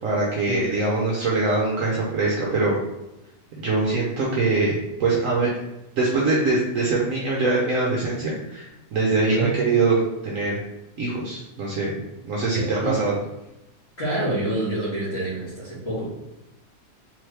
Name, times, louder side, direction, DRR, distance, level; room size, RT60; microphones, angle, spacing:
voice 1, 0.0-2.8 3.6-5.5 6.0-10.6 11.0-11.9 12.2-13.1, right 3 dB, 60° right, -4 dB, 1.0 m, -23 dB
voice 2, 9.3-9.6 12.5-12.9 14.0-16.1, right 1 dB, 40° left, -7 dB, 1.7 m, -27 dB
3.8 x 3.1 x 3.2 m, 0.89 s
omnidirectional pair, 1.7 m